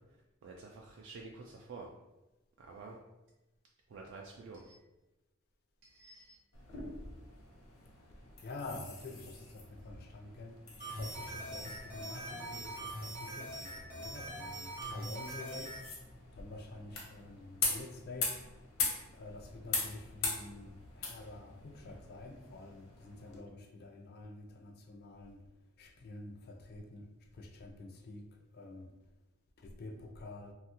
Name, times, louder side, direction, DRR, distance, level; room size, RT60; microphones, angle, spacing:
voice 1, 0.4-1.9 2.6-3.0 3.9-4.8 5.8-6.4, right 3 dB, 60° right, -1 dB, 0.3 m, -49 dB
sound 1, 6.5-23.4, left 4 dB, 80° left, 0.7 m, -42 dB
voice 2, 8.1-10.6 10.9-15.8 16.3-18.5 19.1-25.4 25.8-27.1 27.3-28.3 28.5-28.9 29.6-30.5, left 2 dB, 50° left, 4 dB, 0.4 m, -48 dB
sound 2, 10.8-15.8, right 1 dB, 40° right, 0.7 m, -43 dB
sound 3, 11.1-16.4, left 1 dB, 85° right, 0.8 m, -55 dB
2.8 x 2.3 x 2.8 m, 1.0 s
head